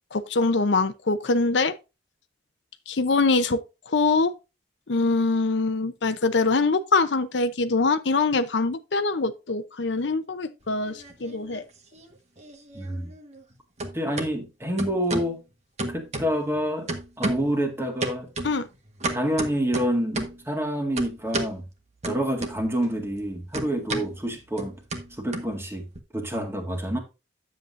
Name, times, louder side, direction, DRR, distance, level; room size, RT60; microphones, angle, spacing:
voice 1, 0.1-1.7 2.9-3.6 3.9-4.3 4.9-11.6 18.4-18.6, left 3 dB, 75° left, 0.7 m, -23 dB
sound 1, 10.7-11.6 11.9-13.5 13.8-14.3 14.8-15.3 15.8-16.6 16.9-17.6 18.0-20.4 21.0-21.6 22.0-22.9 23.1-26.0, right 2 dB, 40° right, 1.5 m, -32 dB
voice 2, 12.7-13.1 13.9-15.4 15.9-16.9 17.2-18.3 19.1-21.6 22.0-24.7 25.2-25.8 26.1-27.0, equal, 15° right, 1.9 m, -27 dB
10.0 x 7.8 x 2.6 m
head